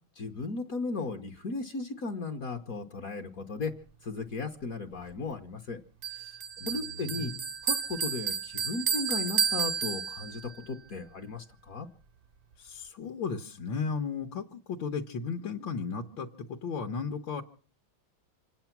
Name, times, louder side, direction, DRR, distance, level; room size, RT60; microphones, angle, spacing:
voice 1, 0.2-3.7 4.0-5.8 6.1-6.4 6.7-7.3 7.6-11.9, left 3 dB, 50° left, 5 dB, 1.2 m, -36 dB
Bell, 6.0-10.5, right 6 dB, 55° right, 0.6 m, -31 dB
voice 2, 6.6-7.5 12.6-17.4, left 5 dB, 70° left, 2 dB, 1.7 m, -35 dB
26.5 x 9.1 x 5.9 m, 0.43 s
omnidirectional pair, 2.2 m